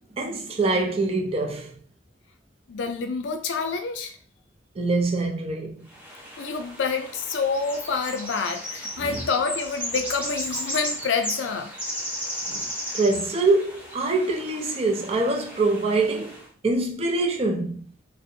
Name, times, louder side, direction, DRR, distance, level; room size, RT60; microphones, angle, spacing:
voice 1, 0.2-1.8 4.8-5.9 9.0-9.2 12.5-12.6 12.9-17.9, right 3 dB, 30° right, 0.4 m, -24 dB
voice 2, 2.7-4.2 6.4-11.7, left 5 dB, 80° left, 0.4 m, -27 dB
sound 1, 5.9-16.4, equal, 10° right, 0.7 m, -35 dB
2.6 x 2.0 x 2.6 m
head